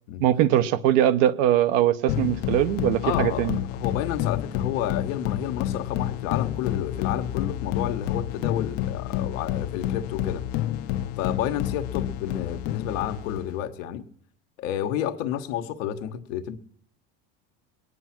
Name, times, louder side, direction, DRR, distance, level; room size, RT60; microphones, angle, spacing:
voice 1, 0.2-3.6, right 11 dB, 70° right, 1.0 m, -21 dB
sound 1, 2.1-13.6, left 12 dB, 60° left, 0.9 m, -29 dB
voice 2, 3.0-10.4 11.2-14.0 14.6-16.6, left 10 dB, 80° left, 1.5 m, -30 dB
21.5 x 9.8 x 6.0 m
supercardioid pair, 120°, 39 cm